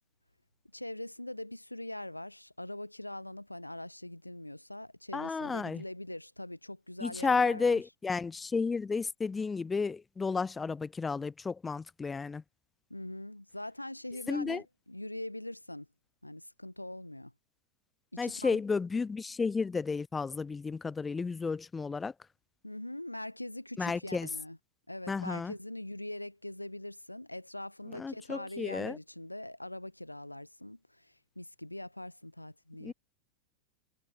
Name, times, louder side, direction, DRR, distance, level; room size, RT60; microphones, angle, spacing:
voice 1, 0.7-7.8 12.9-15.9 16.2-17.3 18.1-18.6 22.6-24.6 24.9-32.9, left 1 dB, 85° left, 1.2 m, -42 dB
voice 2, 5.1-5.8 7.0-12.4 14.3-14.6 18.2-22.1 23.8-24.3 25.1-25.5 28.0-29.0 32.8-32.9, left 4 dB, 15° left, 0.3 m, -32 dB
figure-of-eight pair, 90°, 0 cm